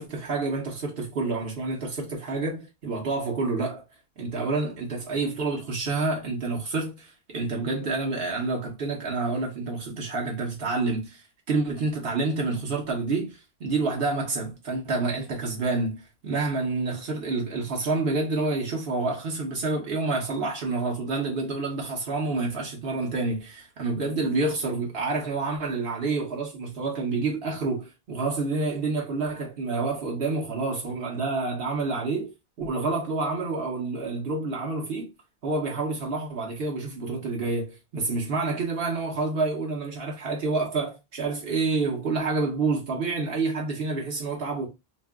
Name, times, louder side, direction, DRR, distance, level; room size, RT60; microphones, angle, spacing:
voice 1, 0.0-3.8 4.2-32.3 32.6-35.1 35.4-44.7, right 3 dB, 70° right, 1.0 m, -28 dB
2.6 x 2.1 x 3.4 m
omnidirectional pair, 1.0 m